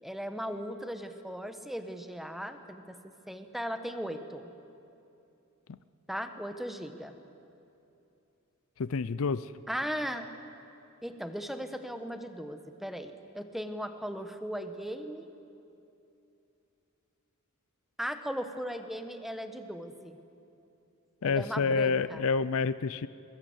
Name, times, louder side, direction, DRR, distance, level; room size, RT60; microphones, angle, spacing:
voice 1, 0.0-3.0 3.3-4.5 6.1-7.2 9.7-10.3 11.0-15.3 18.0-20.2 21.2-22.2, equal, ahead, 8 dB, 1.2 m, -37 dB
voice 2, 8.8-9.5 21.2-23.1, left 4 dB, 70° left, 16 dB, 0.5 m, -28 dB
22.0 x 21.5 x 8.0 m, 2.8 s
head